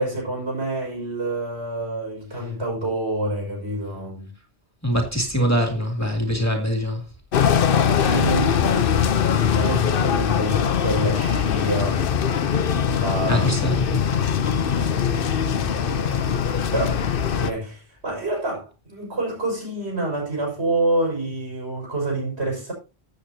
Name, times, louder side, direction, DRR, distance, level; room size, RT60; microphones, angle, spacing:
voice 1, 0.0-4.3 8.0-12.1 12.9-13.5 14.3-16.4 16.7-22.7, right 2 dB, 80° right, 6.0 m, -28 dB
voice 2, 4.8-7.0 7.8-8.1 13.3-14.0, equal, 15° left, 2.7 m, -23 dB
sound 1, 7.3-17.5, left 7 dB, 60° left, 0.9 m, -21 dB
15.5 x 7.9 x 2.8 m
omnidirectional pair, 1.1 m